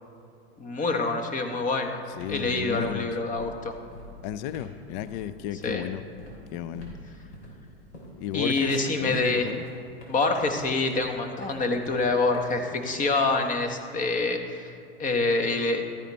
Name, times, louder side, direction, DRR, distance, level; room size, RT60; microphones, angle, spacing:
voice 1, 0.6-2.0 2.3-3.7 5.6-5.8 8.3-9.5 10.1-15.8, left 3 dB, 25° left, 6 dB, 1.2 m, -26 dB
sound 1, 1.6-1.7 2.0-13.4, equal, 85° left, 3.3 m, -46 dB
voice 2, 2.2-3.2 4.2-6.0 6.5-6.9 8.2-9.6, left 11 dB, 45° left, 14 dB, 0.5 m, -33 dB
13.5 x 9.9 x 4.2 m, 2.5 s
hypercardioid pair, 105°, 33 cm